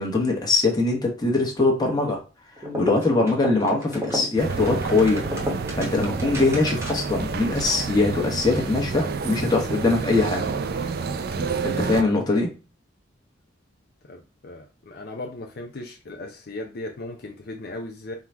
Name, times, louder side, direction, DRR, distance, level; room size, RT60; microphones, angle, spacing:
voice 1, 0.0-2.2 2.6-5.2 5.7-10.5 11.6-12.5, left 3 dB, 20° left, 1.0 m, -22 dB
sound 1, 2.6-7.2, equal, 15° right, 1.0 m, -33 dB
sound 2, 4.4-12.0, right 4 dB, 50° right, 0.4 m, -29 dB
voice 2, 12.1-12.4 14.1-18.1, left 2 dB, 55° left, 0.5 m, -37 dB
3.8 x 2.3 x 4.4 m
head